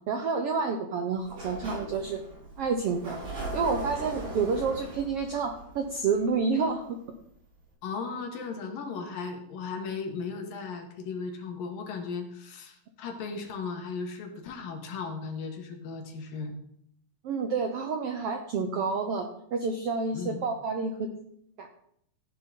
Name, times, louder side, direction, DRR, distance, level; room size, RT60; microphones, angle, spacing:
voice 1, 0.1-2.2 2.6-3.2 3.5-6.9 17.2-21.1 21.6-21.7, right 4 dB, 75° right, 5 dB, 1.3 m, -29 dB
Sliding door, 1.2-6.8, right 2 dB, 50° right, 7.4 m, -40 dB
voice 2, 7.8-16.5 20.1-20.4, left 5 dB, 85° left, 4 dB, 3.3 m, -36 dB
14.0 x 10.5 x 3.8 m, 0.70 s
omnidirectional pair, 4.0 m